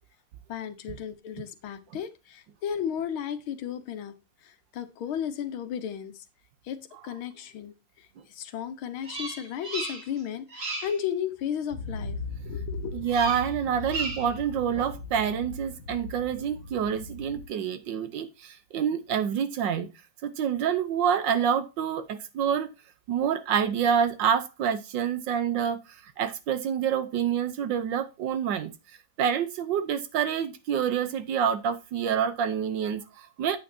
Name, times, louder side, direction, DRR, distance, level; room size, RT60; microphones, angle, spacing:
voice 1, 0.5-4.1 4.4-6.3 6.6-12.2 12.5-13.0, left 9 dB, 85° left, 1.8 m, -34 dB
Bird vocalization bird call bird song, 9.0-10.2 10.5-11.0 13.1-13.5 13.8-14.4, right 3 dB, 40° right, 2.0 m, -35 dB
sound 1, 11.7-17.4, left 2 dB, 70° left, 2.0 m, -38 dB
voice 2, 12.9-19.9 20.2-22.7 23.1-28.7 29.2-33.6, right 8 dB, 70° right, 1.4 m, -27 dB
8.6 x 8.6 x 2.7 m
omnidirectional pair, 2.2 m